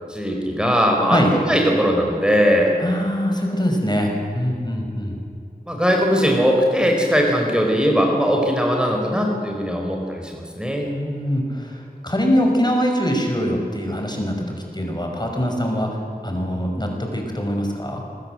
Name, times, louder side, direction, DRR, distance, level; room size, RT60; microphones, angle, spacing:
voice 1, 0.1-1.2 1.5-2.7 5.7-10.9, equal, 5° right, 0 dB, 4.8 m, -19 dB
voice 2, 2.8-5.2 10.9-18.0, equal, 25° left, 1 dB, 5.9 m, -23 dB
27.0 x 21.5 x 7.9 m, 2.4 s
wide cardioid pair, 45°, 16 cm